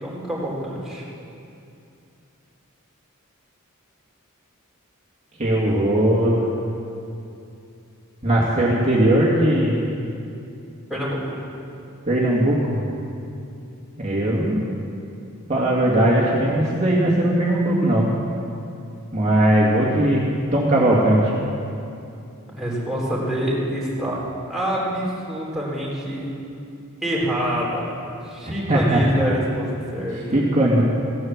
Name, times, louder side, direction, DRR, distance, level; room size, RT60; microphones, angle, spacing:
voice 1, 0.0-1.0 10.9-11.4 22.6-24.2 24.5-26.3 27.0-30.4, equal, ahead, -6 dB, 3.7 m, -26 dB
voice 2, 5.4-6.4 8.2-9.9 12.0-12.8 14.0-14.6 15.5-18.1 19.1-20.3 20.5-21.3 28.4-29.0 30.3-30.8, right 1 dB, 30° right, -6 dB, 2.2 m, -19 dB
16.5 x 11.5 x 7.3 m, 2.7 s
head